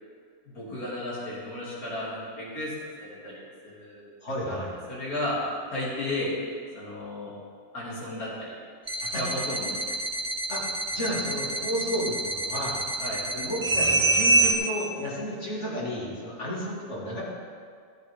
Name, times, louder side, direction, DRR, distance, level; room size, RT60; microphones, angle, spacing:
voice 1, 0.4-2.7 3.0-4.1 4.4-4.6 4.9-5.4 5.7-6.3 6.7-7.3 7.7-8.5 9.1-10.0 13.0-13.2, left 1 dB, 80° left, -8 dB, 3.4 m, -34 dB
voice 2, 4.2-4.7 9.0-9.2 10.5-10.6 10.9-12.8 13.3-17.2, equal, 50° left, -6 dB, 2.8 m, -32 dB
sound 1, 8.9-14.5, right 2 dB, 25° right, 1.1 m, -26 dB
14.0 x 7.9 x 3.6 m, 2.1 s
omnidirectional pair, 1.5 m